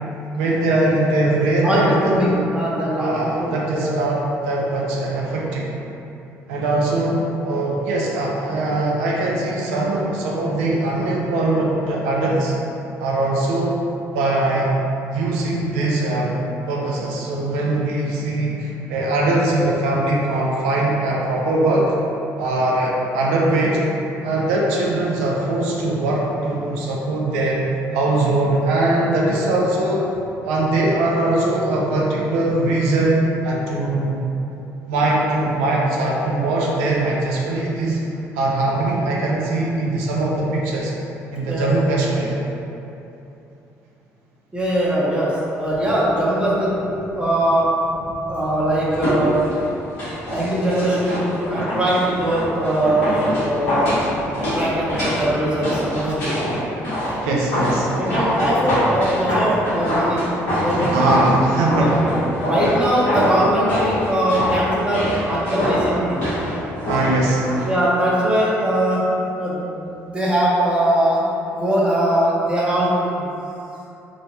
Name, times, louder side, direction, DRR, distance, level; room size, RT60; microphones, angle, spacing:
voice 1, 0.3-2.2 3.0-5.7 6.5-12.5 13.0-13.8 14.1-14.7 15.1-16.4 16.7-22.0 22.4-23.8 24.2-27.6 27.9-30.1 30.4-34.2 34.5-34.6 34.9-38.0 38.3-40.9 41.3-42.3 57.2-57.9 60.9-62.0 66.9-67.4, right 2 dB, 85° right, -3 dB, 0.4 m, -21 dB
voice 2, 1.6-4.0 41.5-41.7 44.5-47.7 47.9-49.4 50.3-54.0 54.4-56.3 58.0-60.3 60.6-61.2 61.7-62.0 62.4-65.0 65.2-66.2 67.7-69.0 69.4-71.2 71.5-73.3, right 1 dB, 15° right, -8 dB, 0.7 m, -21 dB
sound 1, 48.9-67.7 68.0-68.1, equal, 90° left, 1.0 m, -24 dB
2.9 x 2.1 x 2.6 m, 2.9 s
hypercardioid pair, 60°, 7 cm